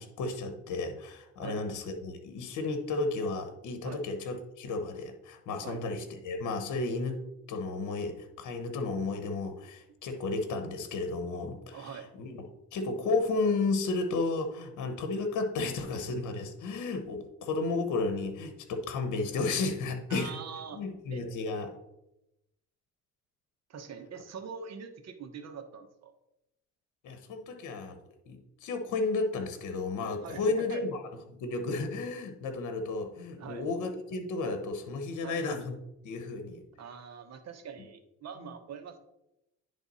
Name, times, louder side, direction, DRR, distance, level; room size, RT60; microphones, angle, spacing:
voice 1, 0.0-7.2 7.5-12.4 12.7-20.3 20.7-21.7 27.0-28.0 28.3-31.0 31.3-35.7 36.0-36.6 38.4-38.5, left 3 dB, 80° left, 6 dB, 1.0 m, -33 dB
voice 2, 11.7-12.1 20.1-20.8 21.1-21.2 23.7-26.1 30.2-30.9 33.4-33.6 35.2-35.4 36.8-39.0, right 6 dB, 60° right, 7 dB, 1.0 m, -43 dB
10.0 x 3.3 x 4.1 m, 0.89 s
cardioid pair, 90°, 30 cm